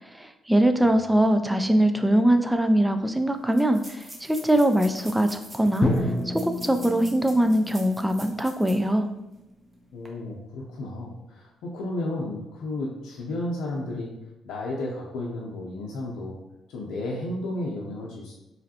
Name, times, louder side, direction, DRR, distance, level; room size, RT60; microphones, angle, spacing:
voice 1, 0.1-5.9 6.3-9.1, right 1 dB, 5° right, 7 dB, 0.3 m, -22 dB
sound 1, 2.4-2.5 2.7-2.8 3.5-8.9 9.3-9.4 9.9-10.1, right 1 dB, 25° right, 0.9 m, -46 dB
Drum, 5.8-9.8, left 1 dB, 45° left, 0.7 m, -31 dB
voice 2, 9.9-14.1 14.4-16.4 16.7-18.3, left 1 dB, 85° left, -3 dB, 0.6 m, -33 dB
4.9 x 3.1 x 2.8 m, 0.96 s
cardioid pair, 90°, 0 cm